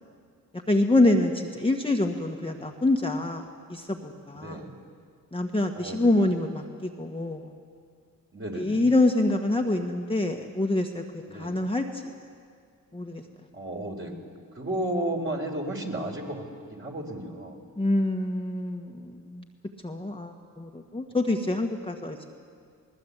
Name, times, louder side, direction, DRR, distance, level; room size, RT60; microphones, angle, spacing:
voice 1, 0.7-3.4 3.7-4.6 5.3-7.4 8.5-11.8 12.9-13.2 17.8-19.4 19.8-22.3, left 2 dB, 15° left, 2 dB, 1.6 m, -26 dB
voice 2, 4.3-4.7 5.7-6.2 8.3-8.9 11.3-11.6 13.5-14.1 14.6-17.6, right 1 dB, 35° right, 1 dB, 4.1 m, -33 dB
21.0 x 19.5 x 8.4 m, 2.1 s
cardioid pair, 60°, 36 cm